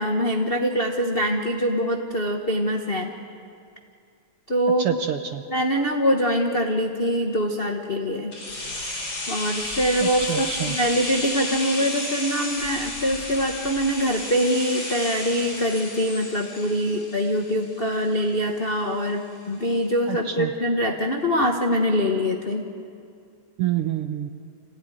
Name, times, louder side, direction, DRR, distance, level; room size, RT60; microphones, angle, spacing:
voice 1, 0.0-3.1 4.5-5.0 5.5-8.3 9.3-22.6, equal, 60° left, 2 dB, 0.5 m, -24 dB
voice 2, 4.8-5.4 10.0-10.8 20.1-20.5 23.6-24.3, right 11 dB, 70° right, 7 dB, 1.4 m, -27 dB
sound 1, 8.3-18.1 18.4-18.5, left 1 dB, 45° left, 6.9 m, -32 dB
27.5 x 16.5 x 10.0 m, 2.4 s
omnidirectional pair, 3.4 m